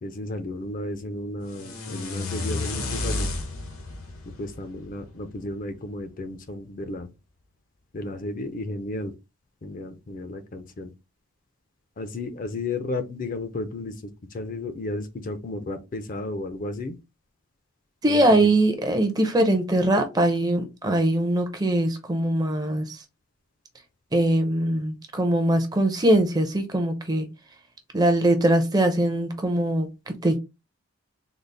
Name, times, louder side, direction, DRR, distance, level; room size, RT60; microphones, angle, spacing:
voice 1, 0.0-3.3 4.4-7.1 7.9-9.1 9.6-10.9 12.0-17.0 18.0-18.4, left 2 dB, 40° left, 0.4 m, -33 dB
sound 1, 1.5-5.6, left 2 dB, 80° left, 0.9 m, -32 dB
voice 2, 18.0-23.0 24.1-27.2 27.9-30.4, right 1 dB, 20° right, 0.5 m, -22 dB
3.9 x 2.0 x 3.3 m
head